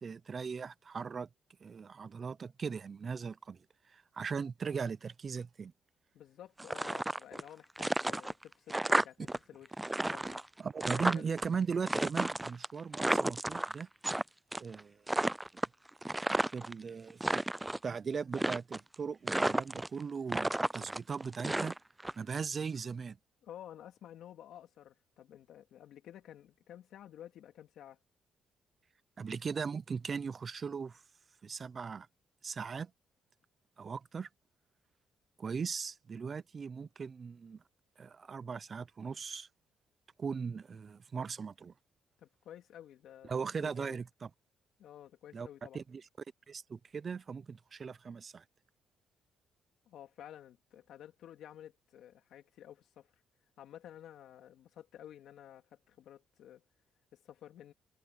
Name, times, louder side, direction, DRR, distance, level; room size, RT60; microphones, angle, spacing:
voice 1, 0.0-1.3 1.6-3.6 3.9-5.7 8.9-9.0 10.6-13.9 14.6-15.0 16.5-17.4 17.8-21.8 22.2-23.2 29.2-31.0 31.4-32.1 32.4-32.9 33.8-34.3 35.4-37.6 38.0-39.5 40.2-41.7 43.3-44.3 45.3-45.5 45.7-46.0 46.5-48.4, right 5 dB, 40° right, 0.7 m, -38 dB
voice 2, 6.1-9.7 10.1-10.5 10.9-11.3 23.4-28.0 42.2-44.0 44.8-45.8 49.9-53.1 53.6-56.6 57.1-57.7, left 11 dB, 75° left, 2.9 m, -52 dB
sound 1, 6.6-7.5 7.8-9.4 9.6-11.5 11.9-14.2 14.5-14.8 15.1-16.7 17.1-17.8 18.3-18.9 19.3-20.0 20.3-22.1, right 1 dB, 10° right, 0.3 m, -32 dB
cardioid pair, 90°, 0 cm